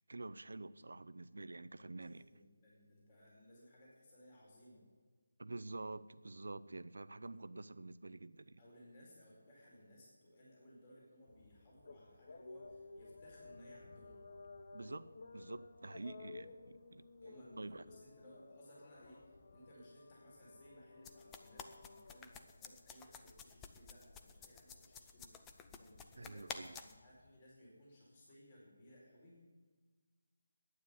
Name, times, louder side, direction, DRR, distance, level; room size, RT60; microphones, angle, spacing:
voice 1, 0.1-2.2 5.4-8.6 14.7-17.0 17.6-17.8 26.2-26.8, right 2 dB, 70° right, 14 dB, 0.6 m, -48 dB
voice 2, 1.7-4.8 7.2-7.4 8.6-14.2 16.2-16.5 17.2-26.5 26.8-29.4, equal, 30° left, -4 dB, 4.5 m, -61 dB
sound 1, 11.3-27.4, left 3 dB, 50° left, 0.9 m, -57 dB
sound 2, 21.0-27.0, left 6 dB, 10° left, 0.6 m, -51 dB
11.5 x 9.5 x 8.2 m, 1.5 s
figure-of-eight pair, 160°, 0 cm